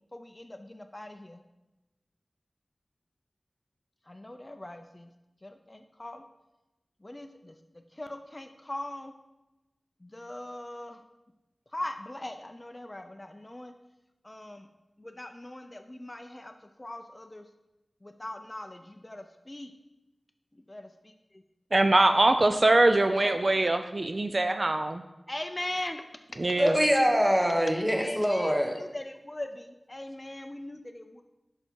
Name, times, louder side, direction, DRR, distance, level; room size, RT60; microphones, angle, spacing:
voice 1, 0.1-1.4 4.1-5.1 5.4-6.3 7.0-7.6 8.0-9.1 10.0-11.0 11.7-13.7 14.2-14.7 15.0-16.5 16.8-17.4 18.0-19.7 20.7-20.9 23.0-23.7 25.3-26.0 27.9-31.2, left 1 dB, 25° left, 7 dB, 0.4 m, -40 dB
voice 2, 21.7-25.0 26.4-26.8, right 2 dB, 45° right, 8 dB, 0.3 m, -23 dB
voice 3, 26.6-28.8, equal, 10° right, 3 dB, 1.0 m, -24 dB
6.5 x 5.7 x 4.5 m, 1.0 s
wide cardioid pair, 70°, 0 cm